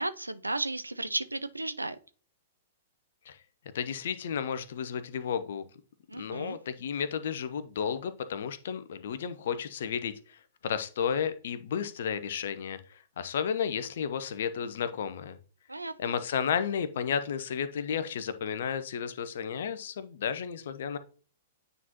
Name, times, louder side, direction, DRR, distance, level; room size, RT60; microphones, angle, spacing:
voice 1, 0.0-2.0 6.1-6.6 15.7-16.2, right 2 dB, 90° right, 0.4 m, -34 dB
voice 2, 3.7-5.6 6.2-10.1 10.6-12.8 13.2-15.4 16.0-21.0, left 7 dB, 60° left, 0.7 m, -32 dB
9.3 x 3.9 x 2.9 m
figure-of-eight pair, 110°, 0 cm